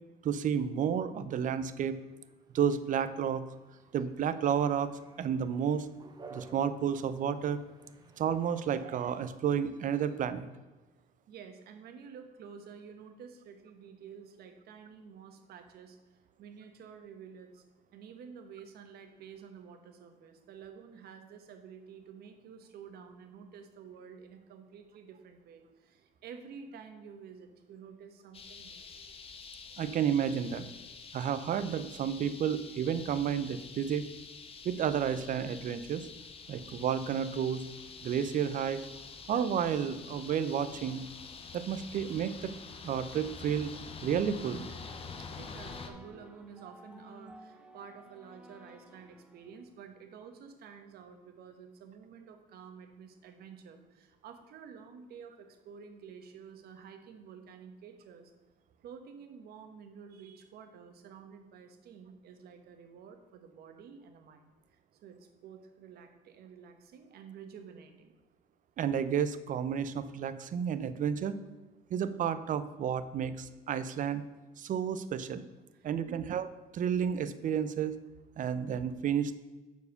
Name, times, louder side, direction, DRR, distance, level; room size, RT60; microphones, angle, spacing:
voice 1, 0.2-2.0 2.5-3.4 3.9-4.9 5.2-5.9 6.3-7.6 8.2-10.5 29.8-30.6 31.1-34.1 34.6-36.1 36.5-37.6 38.0-38.8 39.3-41.0 41.5-42.5 42.8-43.7 44.0-44.7 68.8-71.4 71.9-74.2 74.6-75.4 75.8-76.5 76.7-77.9 78.4-79.3, right 8 dB, 50° right, 13 dB, 0.6 m, -31 dB
sound 1, 1.9-8.6, right 3 dB, 25° right, 1.1 m, -56 dB
voice 2, 11.3-17.6 17.9-28.9 45.2-58.3 58.8-68.1 75.7-76.3, right 6 dB, 70° right, 6 dB, 1.2 m, -50 dB
sound 2, 28.3-45.9, left 5 dB, 35° left, 0.9 m, -47 dB
sound 3, 44.5-49.7, equal, 5° right, 0.8 m, -54 dB
7.0 x 4.7 x 6.7 m, 1.2 s
cardioid pair, 110°, 17 cm